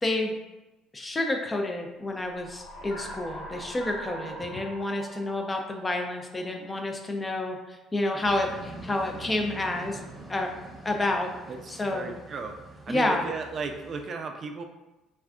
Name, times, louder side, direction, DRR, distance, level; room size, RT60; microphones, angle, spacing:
voice 1, 0.0-0.3 0.9-10.0 10.3-10.5 10.8-11.3 11.7-12.1 12.9-13.2, left 2 dB, 20° left, 3 dB, 0.5 m, -29 dB
sound 1, 2.1-6.8, right 1 dB, 55° left, 1.5 m, -42 dB
sound 2, 8.2-14.0, right 2 dB, 20° right, 1.1 m, -45 dB
voice 2, 11.5-12.5 12.9-14.6, right 4 dB, 45° right, 4 dB, 0.3 m, -35 dB
2.4 x 2.3 x 3.5 m, 1.0 s
supercardioid pair, 85°, 0 cm